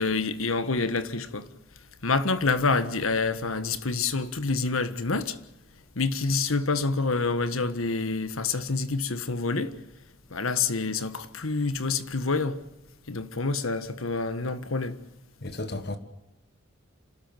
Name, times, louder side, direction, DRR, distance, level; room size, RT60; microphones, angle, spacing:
voice 1, 0.0-1.5 2.0-5.4 5.9-9.7 10.3-12.6 13.1-15.0, left 4 dB, 85° left, 1.5 m, -27 dB
voice 2, 15.4-16.0, left 2 dB, 50° left, 1.7 m, -33 dB
27.5 x 13.0 x 9.2 m
head